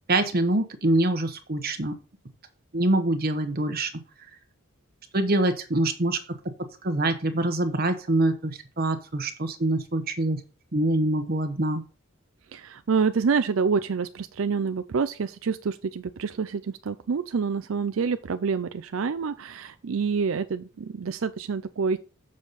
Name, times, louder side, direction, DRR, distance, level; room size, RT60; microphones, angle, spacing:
voice 1, 0.1-1.9 2.7-3.9 5.1-6.2 6.8-10.4 10.7-11.8, right 1 dB, 45° right, 8 dB, 1.1 m, -25 dB
voice 2, 12.5-22.0, right 5 dB, 70° right, 11 dB, 0.4 m, -27 dB
7.3 x 6.4 x 4.1 m, 0.34 s
head